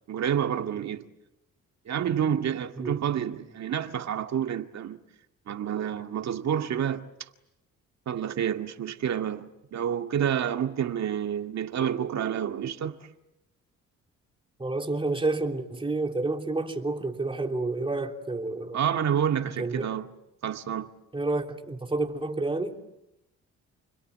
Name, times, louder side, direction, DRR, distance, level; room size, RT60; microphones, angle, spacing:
voice 1, 0.1-1.1 1.9-5.0 5.5-7.3 8.1-13.1 18.7-20.1 20.4-20.9, right 9 dB, 60° right, 2.1 m, -29 dB
voice 2, 14.6-18.8 19.6-19.9 21.1-22.8, right 2 dB, 15° right, 3.1 m, -29 dB
29.5 x 22.0 x 9.4 m
cardioid pair, 90°, 30 cm